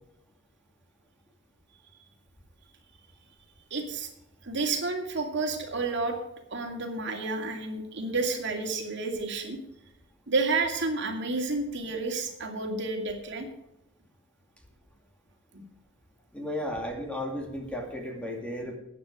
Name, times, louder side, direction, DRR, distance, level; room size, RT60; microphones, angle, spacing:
voice 1, 3.7-4.1 4.4-6.2 6.5-9.6 10.3-13.5 15.5-15.6, right 3 dB, 65° right, 3 dB, 2.4 m, -30 dB
voice 2, 16.3-18.8, left 1 dB, 5° left, 2 dB, 2.3 m, -34 dB
14.0 x 9.6 x 4.9 m, 0.84 s
head